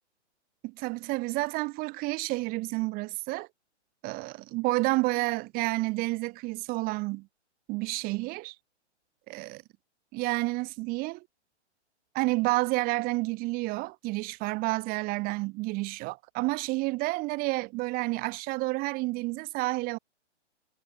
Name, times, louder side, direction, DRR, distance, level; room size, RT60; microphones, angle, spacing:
voice 1, 0.6-3.5 4.0-7.3 7.7-8.5 9.3-9.6 10.1-11.2 12.1-20.0, right 23 dB, 25° right, 2.8 m, -30 dB
hypercardioid pair, 145°, 36 cm